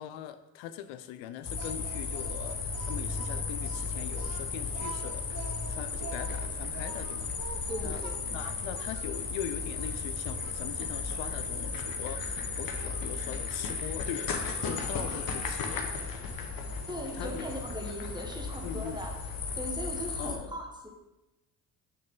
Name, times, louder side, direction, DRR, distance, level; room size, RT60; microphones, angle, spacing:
voice 1, 0.0-8.0 8.3-16.2 17.1-17.5 18.6-19.1 20.2-20.6, left 10 dB, 80° left, 11 dB, 0.5 m, -41 dB
sound 1, 1.4-20.4, left 4 dB, 50° left, 1.1 m, -35 dB
Speech, 1.6-9.1 9.8-9.9 10.4-11.4 12.8-13.1 14.2-15.0, right 6 dB, 45° right, 0.8 m, -47 dB
voice 2, 7.7-8.1 16.9-19.2 19.5-20.9, equal, 10° right, 1 dB, 1.3 m, -39 dB
6.1 x 4.8 x 3.7 m, 1.0 s
supercardioid pair, 70°, 45 cm